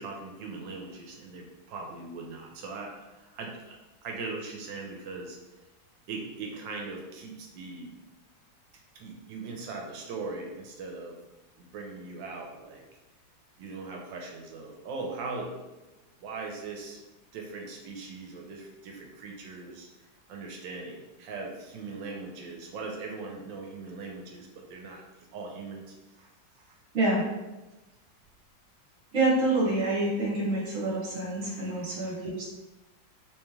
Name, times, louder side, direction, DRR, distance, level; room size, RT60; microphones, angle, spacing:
voice 1, 0.0-3.8 4.0-5.4 6.1-7.9 8.9-11.2 11.6-12.8 13.6-15.5 16.2-17.0 17.3-19.9 20.3-25.0 25.3-26.3 26.7-26.8 31.4-32.2, right 3 dB, 75° right, 1 dB, 1.3 m, -40 dB
voice 2, 29.1-32.4, right 2 dB, 45° right, -4 dB, 1.2 m, -27 dB
3.2 x 3.2 x 3.4 m, 1.1 s
omnidirectional pair, 2.1 m